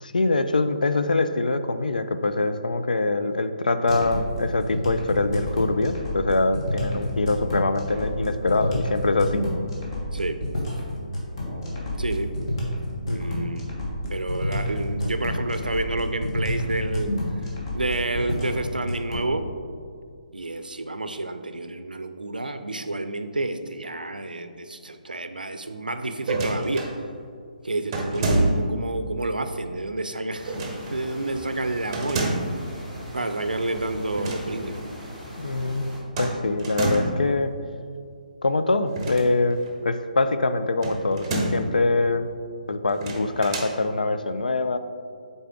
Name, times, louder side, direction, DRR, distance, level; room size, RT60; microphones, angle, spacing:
voice 1, 0.0-9.4 13.1-13.5 35.4-35.9 36.2-37.5 38.4-42.2 42.7-44.8, left 3 dB, 65° left, 9 dB, 0.4 m, -24 dB
sound 1, 3.9-19.3, left 1 dB, 35° left, 1.3 m, -29 dB
voice 2, 12.0-12.3 13.1-13.6 14.1-17.1 17.7-19.5 20.3-26.9 27.6-30.6 30.9-32.4 33.1-34.8, right 2 dB, 75° right, 8 dB, 0.5 m, -29 dB
sound 2, 26.2-26.9 27.9-28.8 30.5-30.9 31.9-32.6 34.0-34.5 34.7-34.9 36.2-37.3 38.9-39.7 40.8-41.7 42.9-43.8, right 2 dB, 25° right, 0.8 m, -27 dB
sound 3, 30.3-36.0, equal, 5° left, 1.2 m, -40 dB
6.6 x 4.1 x 3.6 m, 2.2 s
figure-of-eight pair, 140°, 5 cm